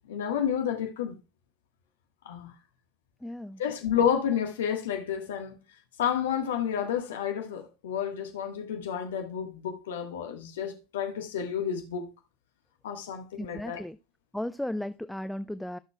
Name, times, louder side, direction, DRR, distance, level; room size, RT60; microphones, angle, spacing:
voice 1, 0.1-1.2 2.2-2.5 3.6-5.6 6.0-12.1 12.8-13.8, left 8 dB, 65° left, 1.3 m, -30 dB
voice 2, 3.2-3.6 13.4-14.0 14.3-15.8, left 1 dB, 5° left, 0.4 m, -35 dB
16.5 x 6.6 x 2.2 m
figure-of-eight pair, 80°, 0 cm